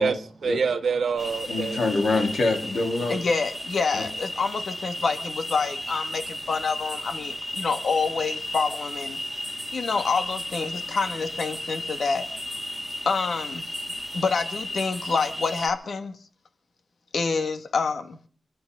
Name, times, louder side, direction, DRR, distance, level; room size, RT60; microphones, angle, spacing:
voice 1, 0.0-1.8 3.0-3.2, right 5 dB, 80° right, 1.2 m, -26 dB
sound 1, 1.2-15.7, left 1 dB, ahead, 2.4 m, -34 dB
voice 2, 1.5-3.1 3.9-4.0, left 3 dB, 85° left, 3.8 m, -25 dB
voice 3, 3.1-9.2 9.7-12.2 13.1-13.6 14.1-16.2 17.1-18.2, left 4 dB, 70° left, 2.0 m, -27 dB
30.0 x 11.5 x 4.0 m
wide cardioid pair, 160°, 0 cm